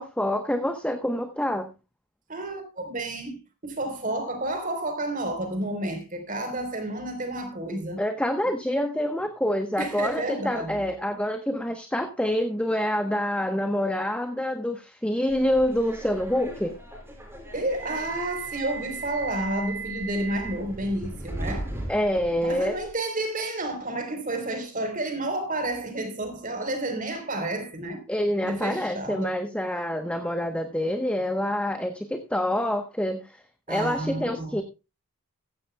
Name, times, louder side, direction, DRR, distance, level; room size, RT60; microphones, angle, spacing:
voice 1, 0.0-1.7 8.0-16.8 21.9-22.8 28.1-33.4 33.7-34.6, left 1 dB, 5° left, 1.0 m, -27 dB
voice 2, 2.3-3.4 3.6-8.0 9.8-10.8 17.5-21.7 22.4-28.0 28.4-29.4 33.7-34.6, right 1 dB, 35° right, 3.8 m, -30 dB
Subway metro underground, 15.3-22.9, right 3 dB, 10° right, 5.0 m, -37 dB
15.0 x 15.0 x 2.2 m
head